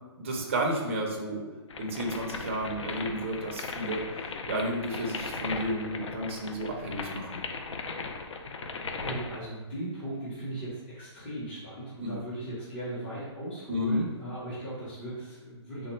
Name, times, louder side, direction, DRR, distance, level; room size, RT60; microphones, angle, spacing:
voice 1, 0.2-1.4 1.8-4.0 4.5-7.4 12.0-12.2 13.7-14.0, right 1 dB, 25° right, 0 dB, 0.4 m, -31 dB
sound 1, 1.7-9.4, left 4 dB, 85° left, 0.5 m, -37 dB
voice 2, 8.3-15.9, right 1 dB, 20° left, -10 dB, 0.7 m, -38 dB
3.4 x 2.0 x 4.2 m, 1.2 s
hypercardioid pair, 175°, 15 cm